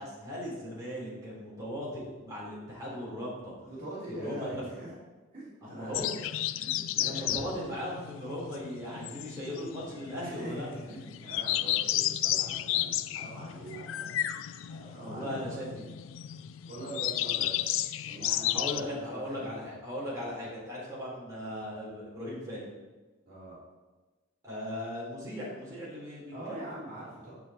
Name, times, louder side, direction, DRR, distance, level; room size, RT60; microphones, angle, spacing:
voice 1, 0.0-3.5 4.1-4.7 5.6-6.1 7.0-10.7 13.7-14.1 14.7-15.8 18.4-22.7 24.4-26.6, left 1 dB, 15° right, -7 dB, 3.5 m, -38 dB
voice 2, 3.7-4.9 5.3-6.3 6.5-7.4 10.2-13.8 14.3-15.6 16.7-17.7 18.1-19.7 23.3-23.6 26.3-27.4, right 1 dB, 45° right, -8 dB, 2.9 m, -43 dB
sound 1, 5.9-18.8, left 13 dB, 75° left, 0.3 m, -33 dB
11.0 x 7.1 x 4.2 m, 1.2 s
head